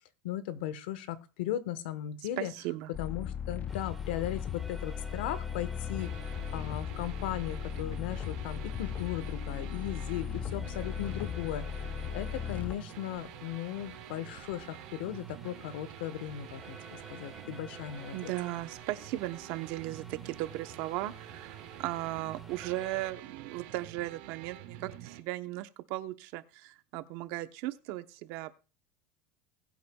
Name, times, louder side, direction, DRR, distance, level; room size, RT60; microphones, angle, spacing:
voice 1, 0.2-2.5 3.0-6.1 6.5-11.6 12.1-18.3, left 12 dB, 90° left, 13 dB, 1.2 m, -37 dB
voice 2, 2.4-2.9 18.1-28.5, right 16 dB, 60° right, 10 dB, 0.9 m, -37 dB
sound 1, 2.9-12.8, left 8 dB, 30° left, 0.5 m, -37 dB
sound 2, 3.7-23.1, right 2 dB, 5° right, 1.6 m, -52 dB
sound 3, 6.0-25.2, right 12 dB, 85° right, 2.2 m, -48 dB
20.0 x 8.4 x 2.3 m, 0.34 s
supercardioid pair, 150°, 5 cm